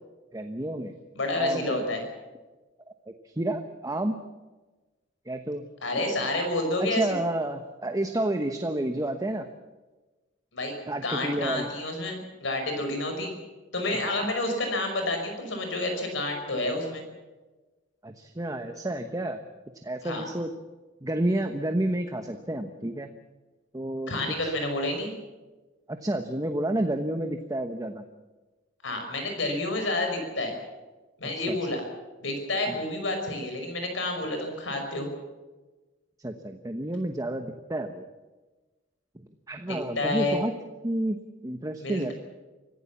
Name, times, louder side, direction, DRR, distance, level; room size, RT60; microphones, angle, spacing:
voice 1, 0.3-0.9 1.3-1.8 3.1-4.2 5.3-5.6 6.8-9.5 10.9-11.7 14.2-14.3 18.0-19.4 19.8-20.5 21.0-23.1 23.7-24.1 24.4-24.5 25.9-28.0 31.4-31.6 32.7-32.8 36.2-38.0 39.5-40.5 40.8-42.1, right 1 dB, 20° right, 6 dB, 1.1 m, -30 dB
voice 2, 1.1-2.0 5.8-7.2 10.5-10.7 11.0-13.3 13.7-17.0 20.0-20.2 24.1-25.1 28.8-30.5 31.2-31.8 32.2-35.1 39.7-40.4 41.8-42.1, left 2 dB, 75° left, 4 dB, 5.6 m, -29 dB
25.5 x 15.5 x 7.2 m, 1.2 s
head